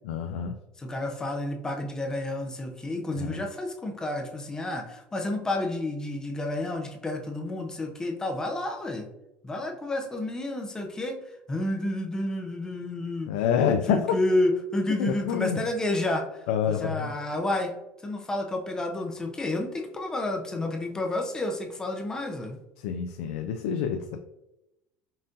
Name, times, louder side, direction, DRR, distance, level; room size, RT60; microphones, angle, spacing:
voice 1, 0.0-0.6 3.2-3.4 13.3-14.2 15.0-15.7 16.5-17.1 22.8-24.2, left 7 dB, 90° left, 6 dB, 0.3 m, -27 dB
voice 2, 0.8-9.1 9.4-11.2 11.5-13.4 13.7-17.7 18.0-22.6, left 1 dB, 15° left, 3 dB, 0.5 m, -30 dB
5.5 x 2.5 x 2.6 m, 0.89 s
cardioid pair, 135°, 4 cm